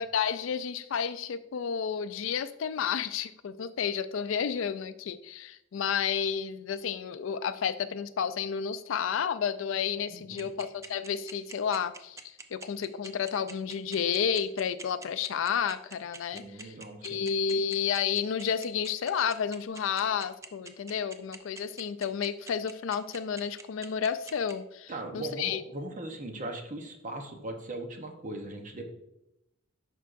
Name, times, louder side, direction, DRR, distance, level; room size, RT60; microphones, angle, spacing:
voice 1, 0.0-12.2 12.5-16.7 17.0-25.6, left 7 dB, 70° left, 13 dB, 0.4 m, -31 dB
voice 2, 10.1-10.5 16.3-17.3 24.9-28.8, right 2 dB, 40° right, 4 dB, 0.9 m, -39 dB
sound 1, 10.4-24.5, right 3 dB, 15° right, 0.4 m, -44 dB
11.0 x 4.6 x 2.5 m, 0.85 s
head